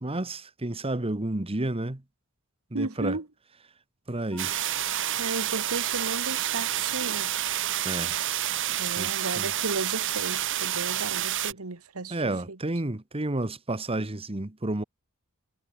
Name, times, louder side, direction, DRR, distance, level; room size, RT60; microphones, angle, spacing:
voice 1, 0.0-2.0 2.7-3.2 4.1-4.5 7.8-8.2 9.0-9.5 12.1-14.8, right 2 dB, 25° right, 1.3 m, -31 dB
voice 2, 2.7-3.2 5.2-7.4 8.8-12.6, right 3 dB, 80° right, 1.7 m, -34 dB
Wind instrument woodwind instrument, 4.3-8.7, left 2 dB, 10° left, 5.9 m, -50 dB
sound 1, 4.4-11.5, right 12 dB, 60° right, 1.7 m, -29 dB
head